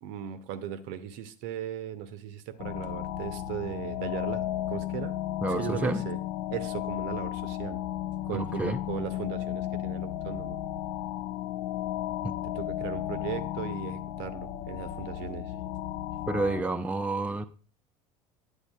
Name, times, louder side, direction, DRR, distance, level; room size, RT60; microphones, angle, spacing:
voice 1, 0.0-5.2 5.6-6.2 6.5-7.8 8.2-10.6 12.5-15.5, right 10 dB, 60° right, 0.7 m, -37 dB
sound 1, 2.6-16.6, left 12 dB, 65° left, 0.5 m, -34 dB
voice 2, 5.4-6.0 8.3-8.8 12.2-12.3 16.3-17.4, right 2 dB, 5° right, 0.5 m, -29 dB
9.9 x 8.1 x 2.3 m
hypercardioid pair, 70°, 20 cm